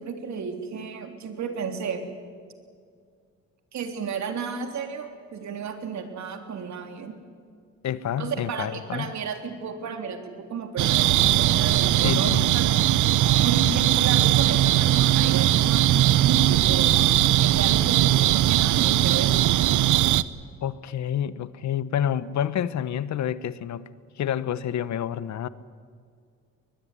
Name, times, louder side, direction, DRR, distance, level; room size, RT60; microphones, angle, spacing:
voice 1, 0.0-2.0 3.7-7.2 8.2-12.7 13.3-17.0 17.4-19.6, right 5 dB, 65° right, 3.6 m, -33 dB
voice 2, 7.8-9.1 12.0-12.5 20.6-23.8 24.2-25.5, left 10 dB, 65° left, 1.2 m, -28 dB
sound 1, 10.8-20.2, right 14 dB, 80° right, 0.8 m, -20 dB
22.0 x 21.5 x 9.9 m
cardioid pair, 90°, 30 cm